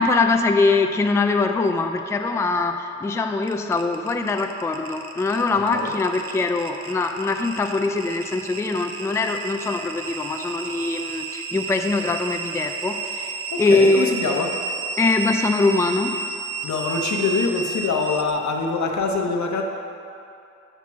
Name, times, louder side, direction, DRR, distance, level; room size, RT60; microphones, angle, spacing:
voice 1, 0.0-14.1 15.0-16.1, left 3 dB, 10° left, 5 dB, 0.3 m, -22 dB
sound 1, 3.4-18.3, right 5 dB, 50° right, 0.7 m, -32 dB
voice 2, 13.5-14.5 16.6-19.6, left 4 dB, 70° left, 2 dB, 0.8 m, -24 dB
5.8 x 4.4 x 6.0 m, 2.7 s
cardioid pair, 75°, 29 cm